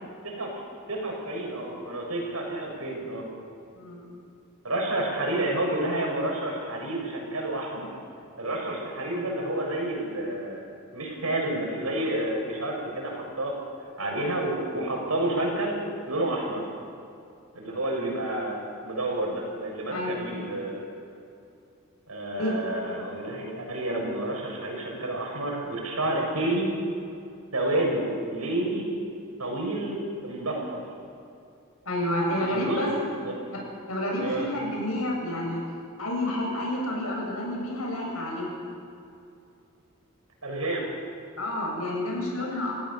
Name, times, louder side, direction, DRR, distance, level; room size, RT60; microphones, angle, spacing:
voice 1, 0.9-3.2 4.6-7.9 8.4-10.6 10.9-13.6 14.0-15.8 16.1-16.6 17.5-20.8 22.1-26.7 27.5-28.9 29.4-30.8 32.3-32.8 33.2-33.4 34.2-34.5 40.4-40.9, right 1 dB, 85° right, 0 dB, 6.6 m, -29 dB
voice 2, 3.7-4.1 19.9-20.2 22.4-22.5 31.9-32.9 33.5-33.6 33.9-35.6 36.0-38.5 40.7-40.8 41.4-42.7, left 1 dB, 75° left, -1 dB, 7.4 m, -29 dB
28.0 x 16.5 x 7.1 m, 2.6 s
head